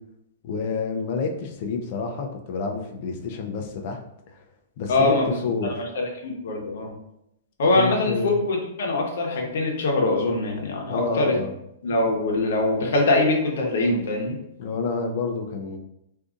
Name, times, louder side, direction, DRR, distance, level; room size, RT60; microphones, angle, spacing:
voice 1, 0.4-4.0 4.8-5.2 5.4-5.8 7.7-8.4 10.9-11.5 14.6-15.8, left 4 dB, 35° left, 3 dB, 0.4 m, -28 dB
voice 2, 4.9-5.4 5.9-6.9 7.6-11.4 11.8-14.3, left 2 dB, 60° left, 0 dB, 0.9 m, -23 dB
3.7 x 2.6 x 2.5 m, 0.80 s
hypercardioid pair, 175°, 0 cm